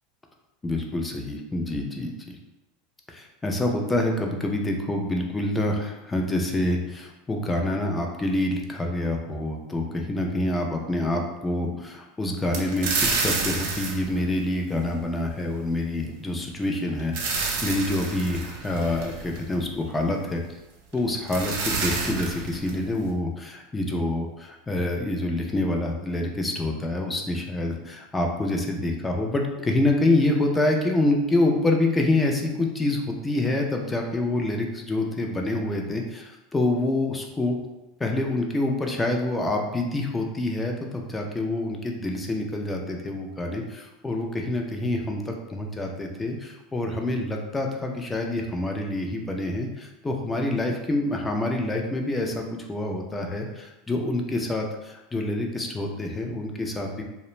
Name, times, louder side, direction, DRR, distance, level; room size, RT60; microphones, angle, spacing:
voice 1, 0.6-2.4 3.1-20.4 20.9-37.6 38.0-57.0, left 2 dB, 15° left, 1 dB, 0.4 m, -27 dB
sound 1, 12.5-15.2 16.7-19.8 20.9-21.0 21.3-23.1, right 4 dB, 70° right, 0.5 m, -29 dB
2.4 x 2.0 x 3.0 m, 0.99 s
hypercardioid pair, 105°, 0 cm